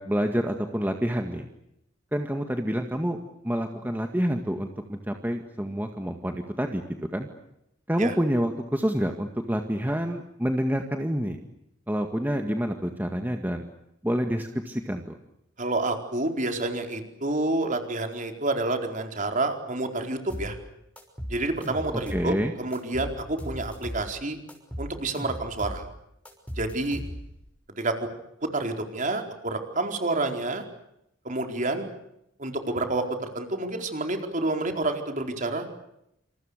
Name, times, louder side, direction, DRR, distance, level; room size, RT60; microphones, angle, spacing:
voice 1, 0.0-1.5 2.1-3.2 3.4-6.8 7.1-7.3 7.9-11.4 11.9-13.7 14.0-15.0 21.9-22.5, equal, 10° right, 4 dB, 1.9 m, -28 dB
voice 2, 15.6-20.6 21.3-24.4 24.8-25.8 26.6-27.0 27.8-28.1 28.5-30.6 31.2-31.8 32.4-35.6, right 2 dB, 40° right, 5 dB, 4.5 m, -29 dB
sound 1, 20.3-20.5 21.0-22.3 22.7-24.1 24.5-25.8 26.2-27.4, equal, 5° left, 6.1 m, -37 dB
28.0 x 28.0 x 6.7 m, 0.81 s
head